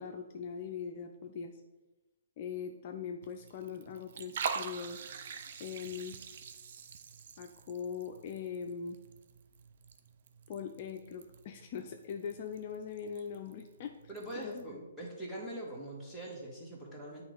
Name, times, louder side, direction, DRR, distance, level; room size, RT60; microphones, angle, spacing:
voice 1, 0.0-1.6 2.4-5.0 5.6-6.2 7.4-9.0 10.5-13.9 14.4-14.6, left 7 dB, 45° left, 4 dB, 0.5 m, -41 dB
Liquid, 3.2-14.7, right 6 dB, 55° right, 0.5 m, -45 dB
voice 2, 14.1-17.2, right 1 dB, ahead, -7 dB, 1.6 m, -43 dB
8.7 x 3.1 x 4.0 m, 1.1 s
hypercardioid pair, 135°, 0 cm